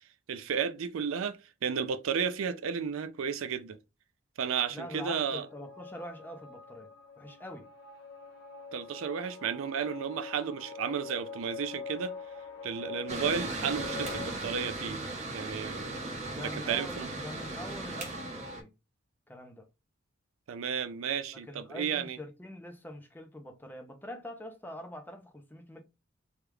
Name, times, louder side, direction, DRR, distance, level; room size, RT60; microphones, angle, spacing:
voice 1, 0.3-1.4 1.6-3.8 4.4-5.5 8.7-12.1 12.6-15.0 15.3-15.9 16.4-17.1 20.5-22.2, right 7 dB, 85° right, 0.4 m, -33 dB
voice 2, 4.7-6.9 7.2-7.7 16.2-18.7 19.3-19.7 21.3-25.8, left 1 dB, 10° left, 0.5 m, -44 dB
sound 1, 5.5-14.4, left 5 dB, 60° left, 0.9 m, -44 dB
Mechanical fan, 13.1-18.6, right 2 dB, 35° right, 0.7 m, -37 dB
3.4 x 2.3 x 3.0 m
head